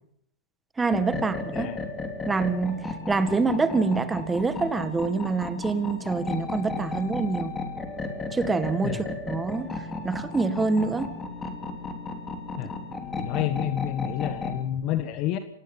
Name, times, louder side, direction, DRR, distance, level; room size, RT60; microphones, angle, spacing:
voice 1, 0.8-1.7 2.3-7.5 8.3-9.7 10.0-11.2, right 4 dB, 10° right, 1.8 m, -26 dB
sound 1, 0.9-14.6, left 3 dB, 15° left, 3.3 m, -34 dB
voice 2, 13.1-15.4, left 12 dB, 40° left, 1.5 m, -29 dB
26.0 x 18.5 x 5.5 m
hypercardioid pair, 125°, 0 cm